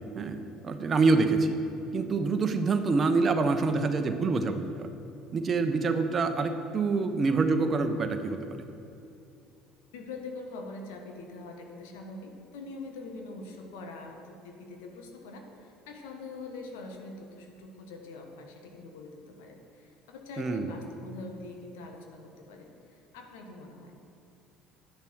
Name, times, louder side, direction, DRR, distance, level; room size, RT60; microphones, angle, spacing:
voice 1, 0.1-1.6 1.9-4.9 5.3-8.7 20.4-20.7, right 3 dB, 35° right, 7 dB, 1.0 m, -26 dB
voice 2, 9.9-24.0, left 3 dB, 65° left, 3 dB, 1.5 m, -44 dB
11.5 x 10.5 x 4.8 m, 2.6 s
figure-of-eight pair, 60°, 0 cm